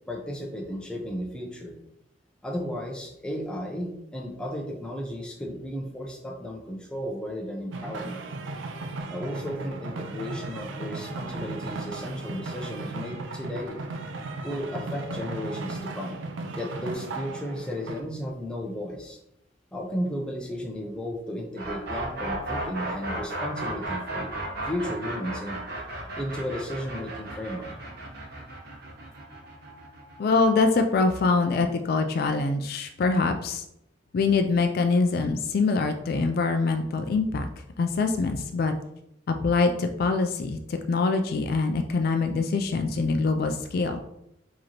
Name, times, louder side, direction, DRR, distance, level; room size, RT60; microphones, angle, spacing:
voice 1, 0.1-1.8 2.4-8.2 9.1-13.8 14.4-16.2 16.6-19.2 19.7-24.3 24.7-25.6 26.2-27.7, equal, 5° left, 0 dB, 0.6 m, -34 dB
sound 1, 7.7-18.0, right 3 dB, 85° right, 0.5 m, -36 dB
sound 2, 21.6-31.4, right 2 dB, 55° right, 1.1 m, -35 dB
voice 2, 30.2-33.6 34.1-37.5 37.8-38.7 39.3-44.0, left 3 dB, 55° left, 6 dB, 0.3 m, -24 dB
4.9 x 2.9 x 2.9 m, 0.79 s
head